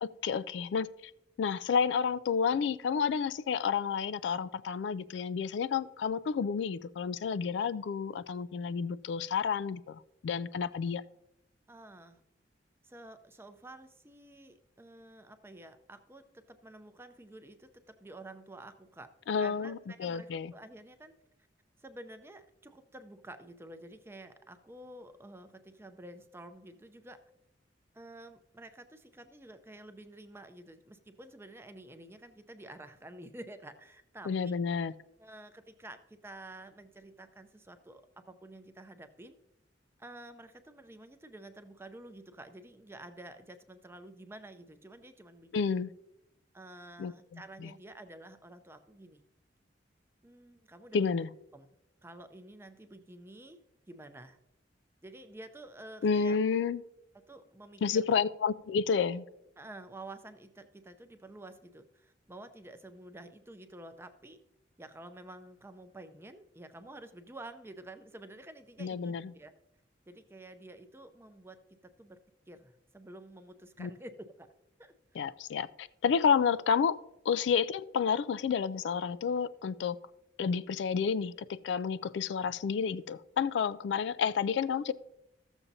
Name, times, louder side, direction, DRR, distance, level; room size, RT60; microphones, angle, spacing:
voice 1, 0.2-0.9 1.4-11.0 19.3-20.5 34.3-34.9 45.5-45.9 47.0-47.7 50.9-51.3 56.0-56.8 57.8-59.3 68.8-69.3 73.8-73.9 75.2-77.0 77.3-80.0 80.4-84.9, left 6 dB, 70° left, 0.3 m, -30 dB
voice 2, 11.7-12.2 12.8-19.1 19.4-21.1 21.8-27.2 27.9-34.5 35.2-39.4 40.0-45.8 46.5-49.2 50.2-51.1 51.5-51.7 52.0-53.6 53.9-54.4 55.0-56.4 57.3-58.0 59.6-64.4 64.8-69.5 70.1-72.2 72.5-74.5 74.8-75.2 77.3-77.4, right 1 dB, 15° right, 0.5 m, -50 dB
14.0 x 7.1 x 2.7 m
head